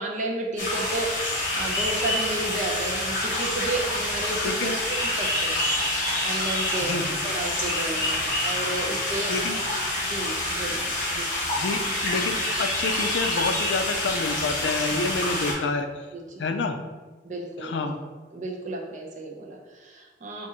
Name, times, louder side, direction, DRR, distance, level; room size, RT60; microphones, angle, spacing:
voice 1, 0.0-5.7 6.2-9.3 10.0-11.4 14.9-15.2 16.1-16.4 17.2-17.9 18.3-20.5, right 2 dB, 40° right, 0 dB, 0.6 m, -32 dB
sound 1, 0.6-15.5, left 1 dB, 45° left, 1.4 m, -27 dB
voice 2, 4.4-4.7 6.8-7.2 9.3-9.6 11.6-15.9 16.4-16.8 17.6-18.0, left 3 dB, 70° left, 7 dB, 0.4 m, -28 dB
6.1 x 2.5 x 2.7 m, 1.3 s
head